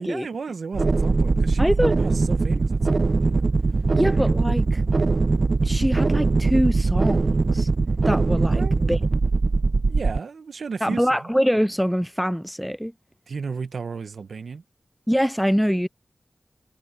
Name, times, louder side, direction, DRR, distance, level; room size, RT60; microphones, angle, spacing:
voice 1, 0.0-1.7 2.0-3.4 8.5-8.8 9.9-11.3 13.3-14.6, right 5 dB, 80° right, 1.3 m, -34 dB
sound 1, 0.7-10.2, right 3 dB, 55° right, 0.8 m, -21 dB
voice 2, 1.6-1.9 3.9-4.8 5.6-7.7 8.1-9.0 10.8-12.9 15.1-15.9, equal, ahead, 0.5 m, -24 dB
cardioid pair, 55°, 0 cm